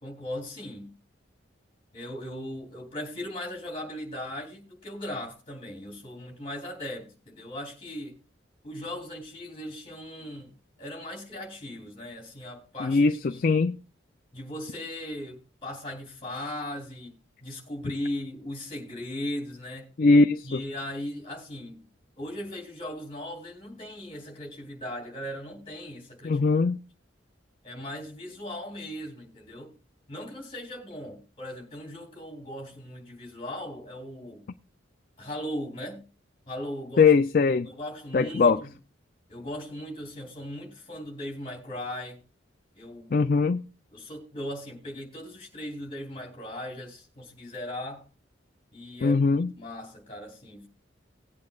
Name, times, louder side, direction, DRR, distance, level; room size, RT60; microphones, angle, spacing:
voice 1, 0.0-0.9 1.9-8.2 8.6-10.5 10.8-13.4 14.3-17.1 17.4-19.9 20.4-21.8 22.2-26.5 27.6-29.7 30.1-34.4 35.2-36.0 36.5-37.1 37.6-38.7 39.3-42.2 42.7-43.2 43.9-48.0 48.7-50.7, left 1 dB, 25° left, 3.0 m, -38 dB
voice 2, 12.8-13.8 20.0-20.6 26.2-26.8 37.0-37.7 38.1-38.6 43.1-43.6 49.0-49.5, left 4 dB, 45° left, 0.4 m, -21 dB
18.5 x 8.5 x 2.4 m
head